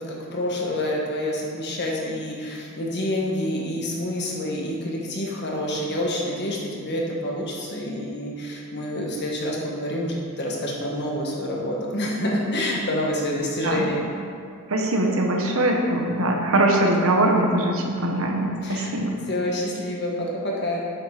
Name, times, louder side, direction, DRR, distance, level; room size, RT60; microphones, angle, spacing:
voice 1, 0.0-14.0 18.6-18.9 19.3-20.8, left 1 dB, 50° left, -2 dB, 1.5 m, -27 dB
voice 2, 14.7-19.1, right 1 dB, 65° right, 1 dB, 1.1 m, -22 dB
7.9 x 6.1 x 5.0 m, 2.2 s
head